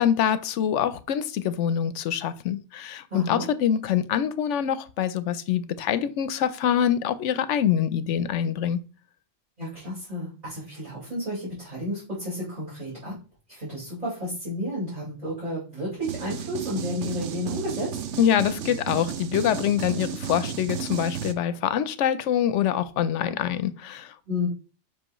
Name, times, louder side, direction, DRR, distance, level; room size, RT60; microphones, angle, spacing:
voice 1, 0.0-8.8 18.2-24.1, left 9 dB, 85° left, 0.9 m, -25 dB
voice 2, 3.1-3.5 9.6-13.2 13.5-18.0 24.3-24.5, left 1 dB, 35° right, 4.5 m, -32 dB
sound 1, 16.0-21.3, right 8 dB, 80° right, 1.0 m, -33 dB
7.7 x 5.5 x 3.0 m
omnidirectional pair, 1.2 m